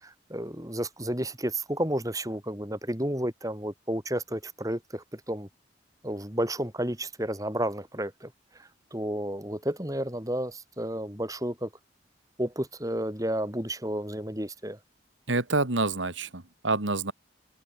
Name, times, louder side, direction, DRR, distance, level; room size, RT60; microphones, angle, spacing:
voice 1, 0.0-5.5 6.0-8.3 8.6-11.7 12.4-14.8, right 1 dB, 20° right, 4.5 m, -32 dB
voice 2, 15.3-17.1, right 3 dB, 80° right, 2.7 m, -27 dB
head